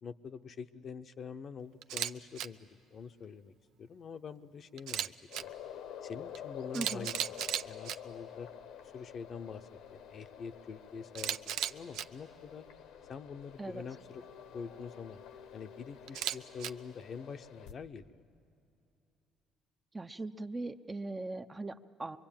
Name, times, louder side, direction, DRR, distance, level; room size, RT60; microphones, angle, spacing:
voice 1, 0.0-3.5 3.8-5.1 6.0-7.2 7.6-8.5 8.9-12.6 13.1-14.2 14.5-15.2 15.5-18.2, left 6 dB, 45° left, 9 dB, 0.7 m, -45 dB
Camera, 1.8-2.1 2.4-2.5 4.8-5.4 6.3-6.4 6.7-8.0 11.1-12.0 16.1-16.7, right 11 dB, 75° right, 0.6 m, -35 dB
sound 1, 5.3-17.7, left 9 dB, 80° left, 1.2 m, -49 dB
voice 2, 6.7-7.1 13.6-13.8 19.9-22.2, right 2 dB, 15° right, 8 dB, 0.6 m, -39 dB
24.5 x 23.0 x 8.8 m, 2.7 s
cardioid pair, 110°, 0 cm